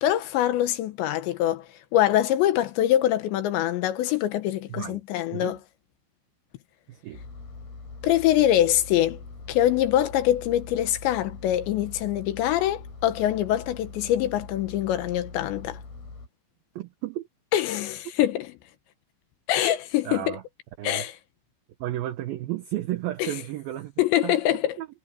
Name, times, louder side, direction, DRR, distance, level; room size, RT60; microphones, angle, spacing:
voice 1, 0.0-1.7 1.9-5.6 8.0-9.2 9.5-15.8 17.5-18.5 19.5-20.4 20.8-21.1 23.2-23.3 24.0-24.8, left 12 dB, 75° left, 3.2 m, -24 dB
voice 2, 4.7-5.0 5.3-5.6 6.9-7.2 16.8-17.3 20.0-20.4 20.8-21.1 21.8-23.9 24.2-24.4 24.8-24.9, right 14 dB, 90° right, 2.1 m, -33 dB
Engine, 7.1-16.3, left 4 dB, 50° left, 8.8 m, -42 dB
omnidirectional pair, 5.5 m